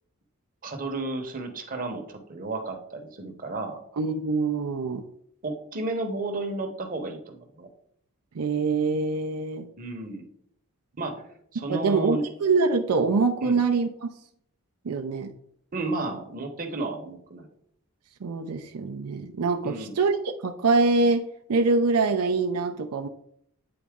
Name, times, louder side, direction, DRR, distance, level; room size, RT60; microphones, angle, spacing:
voice 1, 0.6-3.8 5.4-7.7 9.8-10.3 11.0-11.2 11.5-12.2 13.4-13.6 15.7-17.5 19.6-19.9, right 2 dB, 40° right, 4 dB, 0.9 m, -32 dB
voice 2, 4.0-5.0 8.3-9.7 11.7-14.1 14.8-15.3 18.2-23.1, right 4 dB, 85° right, 5 dB, 0.5 m, -24 dB
8.7 x 4.0 x 3.6 m, 0.69 s
head